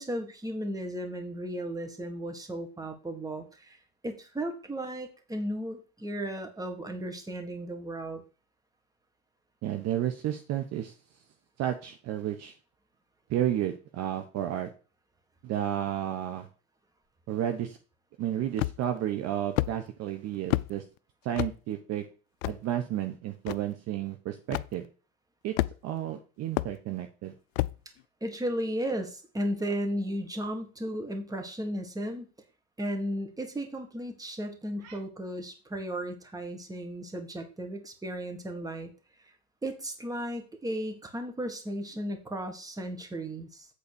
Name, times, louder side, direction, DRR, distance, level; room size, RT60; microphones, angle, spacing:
voice 1, 0.0-3.8 4.0-8.2 28.2-32.3 32.8-38.9 39.6-43.7, equal, 10° right, 6 dB, 1.6 m, -35 dB
voice 2, 9.6-10.9 11.6-12.5 13.3-14.7 15.4-16.5 17.3-17.8 18.2-20.8 21.2-22.0 22.5-24.9 25.4-25.5 25.8-27.3 34.8-35.0, right 11 dB, 35° right, 7 dB, 0.9 m, -32 dB
sound 1, 18.6-19.0 19.6-19.7 20.5-20.7 21.4-21.6 22.4-22.6 23.5-23.6 24.5-24.7 25.6-26.0 26.6-26.7 27.6-27.8, left 19 dB, 60° left, 0.5 m, -28 dB
8.4 x 4.0 x 6.8 m, 0.36 s
supercardioid pair, 120°, 44 cm